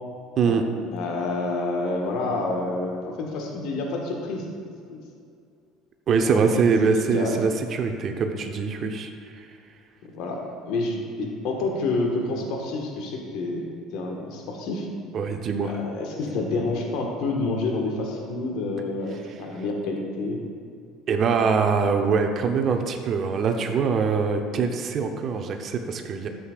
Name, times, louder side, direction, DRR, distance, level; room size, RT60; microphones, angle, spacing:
voice 1, 0.9-4.6 4.9-5.0 6.2-7.3 10.0-10.4 10.7-14.9 15.6-20.4, left 2 dB, 65° left, 1 dB, 1.5 m, -28 dB
voice 2, 6.1-9.1 9.4-9.5 15.1-15.7 21.1-26.3, right 5 dB, 50° right, 5 dB, 0.8 m, -23 dB
13.0 x 7.8 x 2.5 m, 2.4 s
hypercardioid pair, 65°, 0 cm